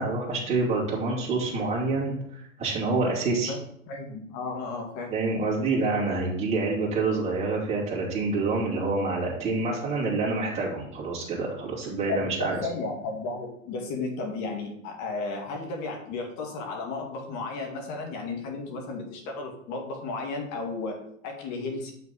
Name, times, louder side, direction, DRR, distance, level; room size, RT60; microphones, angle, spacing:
voice 1, 0.0-3.5 5.1-12.5, right 3 dB, 15° right, -7 dB, 2.8 m, -27 dB
voice 2, 3.9-5.1 12.1-21.9, left 3 dB, 45° left, 2 dB, 2.2 m, -34 dB
7.4 x 5.9 x 4.2 m, 0.72 s
hypercardioid pair, 115°, 40 cm